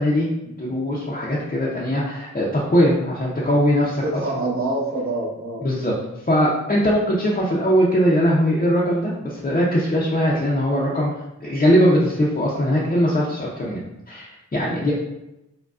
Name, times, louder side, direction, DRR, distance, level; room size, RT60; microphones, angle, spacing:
voice 1, 0.0-4.2 5.6-5.9 6.3-11.1 11.4-14.9, equal, 30° left, -6 dB, 0.6 m, -20 dB
voice 2, 4.0-5.6, right 2 dB, 50° right, -5 dB, 1.0 m, -25 dB
4.7 x 2.2 x 2.4 m, 0.91 s
wide cardioid pair, 85°, 29 cm